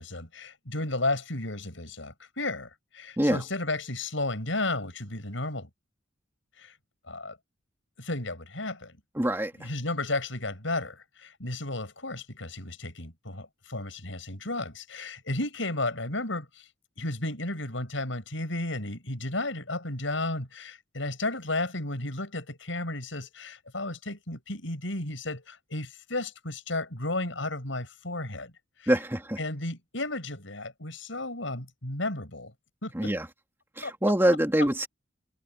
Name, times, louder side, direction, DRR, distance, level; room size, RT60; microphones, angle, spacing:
voice 1, 0.0-5.7 6.6-6.7 7.1-7.4 8.0-9.0 9.6-16.6 17.0-28.5 28.8-28.9 29.4-32.5 32.8-33.1 33.8-33.9, left 2 dB, 80° left, 7.5 m, -33 dB
voice 2, 9.2-9.5 28.9-29.4 32.9-33.3 33.8-34.9, right 1 dB, 10° right, 2.3 m, -24 dB
head